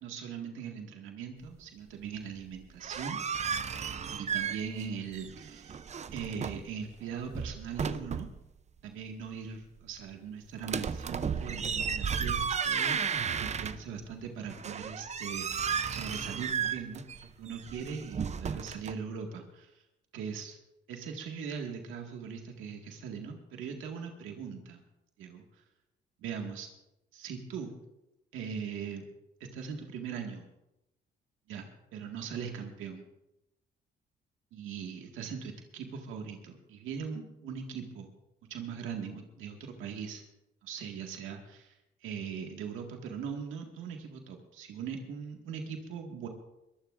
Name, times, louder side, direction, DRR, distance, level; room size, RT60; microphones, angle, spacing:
voice 1, 0.0-3.2 4.1-5.8 6.1-8.3 8.8-13.0 13.3-19.8 20.1-20.6 20.9-24.8 25.2-25.6 26.2-26.7 27.1-27.7 28.3-29.0 29.5-30.4 31.5-31.7 31.9-33.0 34.5-38.1 38.5-40.2 40.6-46.3, right 6 dB, 90° right, 2 dB, 1.9 m, -40 dB
sound 1, 2.6-4.9 5.1-6.7 7.2-8.4 10.6-14.1 14.5-18.9, right 6 dB, 35° right, 0.6 m, -34 dB
22.5 x 15.5 x 2.6 m, 0.90 s
cardioid pair, 90°, 20 cm